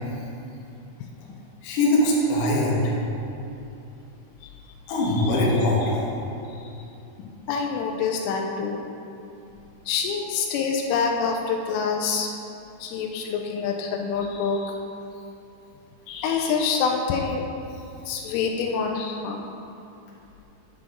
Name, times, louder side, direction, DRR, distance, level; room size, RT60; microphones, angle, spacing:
voice 1, 1.6-2.8 4.9-6.1, left 1 dB, 65° left, -6 dB, 2.3 m, -21 dB
voice 2, 7.2-8.8 9.9-12.3 12.8-14.8 16.1-17.4 18.1-19.5, left 5 dB, 80° left, 2 dB, 3.0 m, -26 dB
8.7 x 7.7 x 3.7 m, 2.8 s
omnidirectional pair, 5.8 m